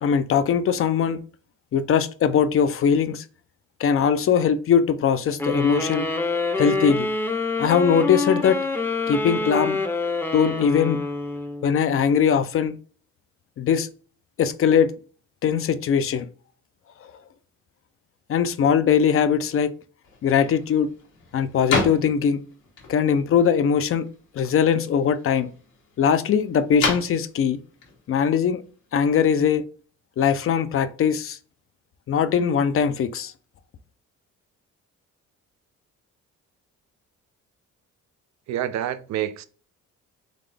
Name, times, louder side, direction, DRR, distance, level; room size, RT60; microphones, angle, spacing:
voice 1, 0.0-1.2 1.7-3.2 3.8-6.1 6.6-7.1 7.6-8.6 9.1-9.8 10.3-11.0 11.6-12.8 13.6-13.9 14.4-14.9 15.4-16.3 17.0-17.1 18.3-19.7 20.2-20.9 21.3-22.4 22.9-24.1 24.3-25.5 26.0-27.6 28.1-28.6 28.9-29.6 30.2-31.4 32.1-33.3, left 7 dB, 50° left, 0.5 m, -21 dB
sound 1, 5.4-11.8, left 3 dB, 10° left, 0.6 m, -26 dB
sound 2, 20.0-29.2, left 4 dB, 85° left, 1.5 m, -34 dB
voice 2, 38.5-39.4, right 11 dB, 65° right, 0.5 m, -27 dB
4.1 x 3.2 x 3.3 m
cardioid pair, 90°, 30 cm